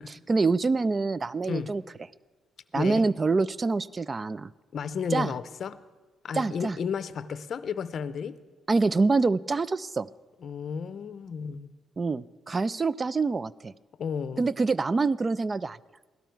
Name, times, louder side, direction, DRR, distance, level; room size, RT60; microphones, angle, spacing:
voice 1, 0.0-1.8 2.7-4.5 5.1-5.3 6.3-6.8 8.7-10.1 12.0-13.7 14.4-15.8, right 3 dB, 30° right, 0.3 m, -26 dB
voice 2, 2.7-3.1 4.7-5.8 6.2-8.4 10.4-11.7 14.0-14.5, left 6 dB, 55° left, 0.6 m, -33 dB
17.5 x 12.0 x 4.6 m
cardioid pair, 90°, 0 cm